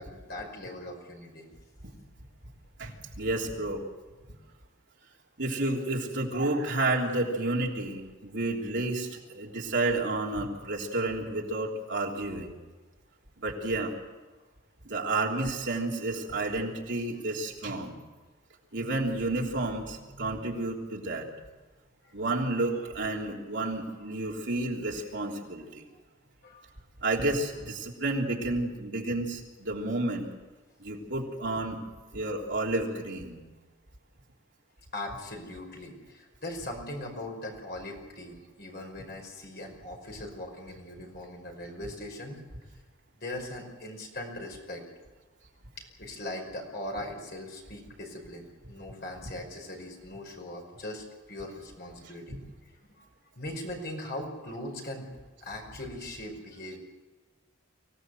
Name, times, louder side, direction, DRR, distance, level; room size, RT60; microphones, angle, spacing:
voice 1, 0.0-1.5 26.4-26.7 34.9-42.4 43.1-44.8 45.8-52.4 53.0-53.1 53.4-55.1 55.4-56.8, left 1 dB, 50° left, 2 dB, 5.3 m, -40 dB
voice 2, 2.8-3.8 5.4-12.5 13.4-13.9 14.9-17.9 18.7-21.3 22.1-25.8 27.0-30.3 30.8-31.8 32.1-33.4, right 2 dB, 55° right, -1 dB, 3.4 m, -31 dB
24.5 x 17.0 x 7.8 m, 1.3 s
head